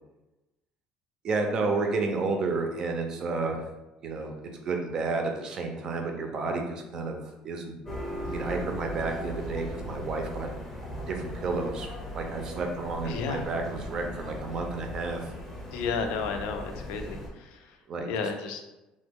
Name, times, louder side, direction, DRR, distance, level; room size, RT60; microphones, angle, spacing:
voice 1, 1.2-3.7 4.0-7.8 8.3-10.5 11.1-11.9 12.1-15.2 17.9-18.3, right 3 dB, 35° right, 3 dB, 0.4 m, -31 dB
sound 1, 7.8-17.3, equal, 10° left, 0.6 m, -38 dB
voice 2, 13.0-13.4 15.7-17.7 18.1-18.6, left 5 dB, 90° left, 5 dB, 0.4 m, -32 dB
3.0 x 2.1 x 3.4 m, 0.99 s
cardioid pair, 175°, 2 cm